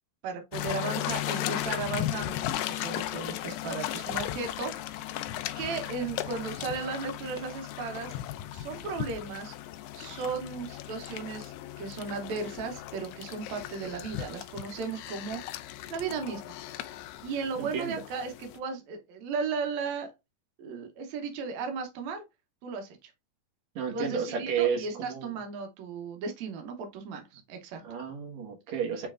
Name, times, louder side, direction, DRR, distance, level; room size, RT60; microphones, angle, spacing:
voice 1, 0.2-4.7 5.6-8.2 8.5-9.5 10.0-15.4 15.9-16.4 17.2-20.1 20.6-22.2 22.6-23.1 23.9-27.8, right 5 dB, 90° right, 1.5 m, -35 dB
sound 1, 0.5-18.6, left 13 dB, 90° left, 1.9 m, -36 dB
voice 2, 17.6-18.0 23.8-25.4 27.8-29.1, right 7 dB, 60° right, 1.9 m, -32 dB
7.0 x 3.2 x 2.4 m
omnidirectional pair, 4.5 m